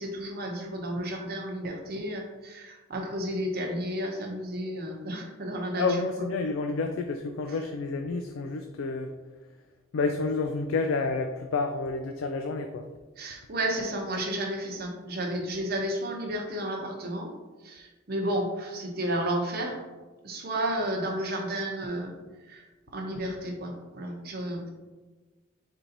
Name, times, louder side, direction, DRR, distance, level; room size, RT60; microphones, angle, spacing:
voice 1, 0.0-5.8 13.2-17.3 17.6-19.8 20.2-22.2 22.4-22.6 22.9-24.7, right 1 dB, 50° right, 1 dB, 0.9 m, -32 dB
voice 2, 5.7-9.1 9.9-12.9, left 3 dB, 80° left, 5 dB, 0.3 m, -29 dB
4.5 x 2.8 x 3.9 m, 1.2 s
head